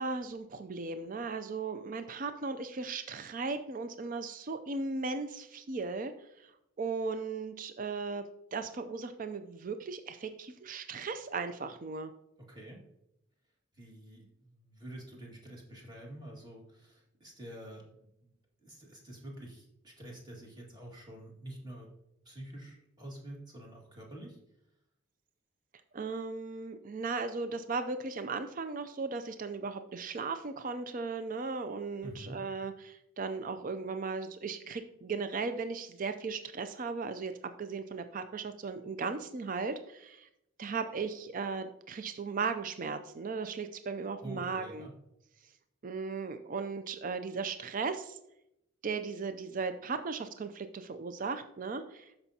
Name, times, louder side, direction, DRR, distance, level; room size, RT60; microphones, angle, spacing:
voice 1, 0.0-6.5 6.8-12.1 25.9-40.3 40.6-44.9 45.8-48.2 48.8-52.1, right 4 dB, 40° right, 9 dB, 0.4 m, -37 dB
voice 2, 12.5-12.8 13.7-18.3 18.6-21.9 22.3-24.4 32.0-32.4 44.2-44.9, right 1 dB, 20° right, -2 dB, 1.9 m, -47 dB
13.0 x 5.4 x 2.8 m, 0.82 s
head